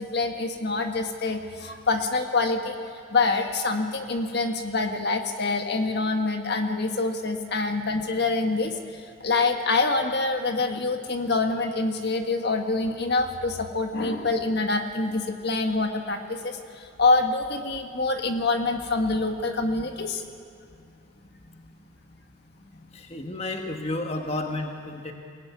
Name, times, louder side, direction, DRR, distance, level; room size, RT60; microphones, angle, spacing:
voice 1, 0.0-2.8 3.1-20.2 21.5-21.6 22.8-22.9, left 3 dB, 50° left, 5 dB, 1.6 m, -26 dB
voice 2, 22.9-25.1, left 2 dB, 30° left, 3 dB, 1.4 m, -31 dB
22.0 x 18.0 x 9.5 m, 2.5 s
head